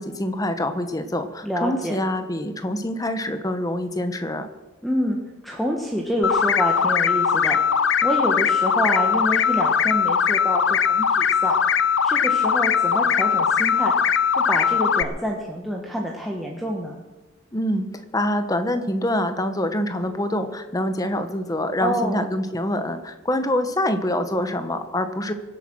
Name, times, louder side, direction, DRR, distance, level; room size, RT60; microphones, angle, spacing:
voice 1, 0.0-4.5 17.5-17.9 18.1-25.3, left 1 dB, 15° left, 8 dB, 1.1 m, -25 dB
voice 2, 1.4-2.0 4.8-5.2 5.4-11.6 12.0-13.9 14.3-16.9 21.8-22.2, equal, ahead, 0 dB, 1.3 m, -27 dB
sound 1, 6.2-15.0, left 7 dB, 65° left, 0.7 m, -20 dB
24.0 x 8.4 x 6.2 m, 1.1 s
head